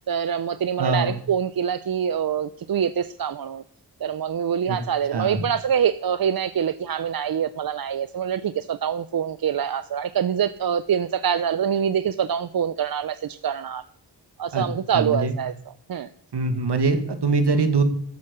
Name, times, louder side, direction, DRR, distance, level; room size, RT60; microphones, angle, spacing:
voice 1, 0.1-3.6 4.0-13.8 14.4-15.5 15.9-16.1, right 8 dB, 60° right, 13 dB, 0.6 m, -25 dB
voice 2, 0.8-1.1 4.7-4.8 5.1-5.4 14.5-14.7 14.9-15.3 16.3-17.8, right 3 dB, 75° right, 8 dB, 2.1 m, -23 dB
13.0 x 11.5 x 7.0 m, 0.64 s
wide cardioid pair, 140°, 41 cm